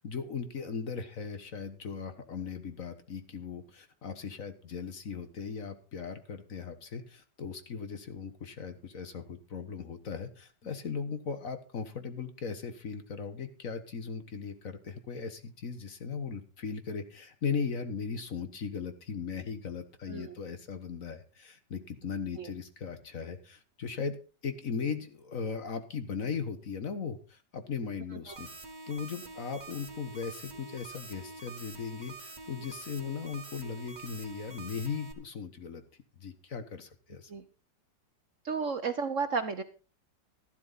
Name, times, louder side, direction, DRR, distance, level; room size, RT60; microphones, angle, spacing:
voice 1, 0.0-24.2 24.4-28.5 28.9-35.8 36.2-37.3, left 5 dB, 50° left, 9 dB, 1.6 m, -38 dB
sound 1, 28.3-35.1, right 3 dB, 25° right, 1.5 m, -46 dB
voice 2, 38.4-39.6, right 5 dB, 50° right, 10 dB, 1.1 m, -32 dB
13.0 x 11.5 x 4.0 m, 0.35 s
omnidirectional pair, 1.9 m